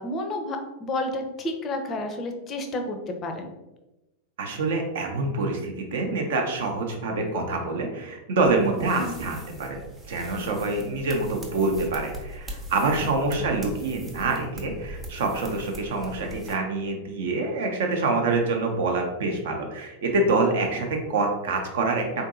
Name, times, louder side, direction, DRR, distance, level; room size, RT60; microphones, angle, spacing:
voice 1, 0.0-3.5 9.0-9.2 13.0-13.1 13.4-13.5, left 1 dB, 30° left, 5 dB, 0.5 m, -31 dB
voice 2, 4.4-22.3, right 3 dB, 55° right, 3 dB, 0.6 m, -26 dB
sound 1, 8.4-16.5, right 1 dB, 15° right, 0.6 m, -41 dB
3.8 x 2.6 x 2.5 m, 1.0 s
figure-of-eight pair, 90°, 0 cm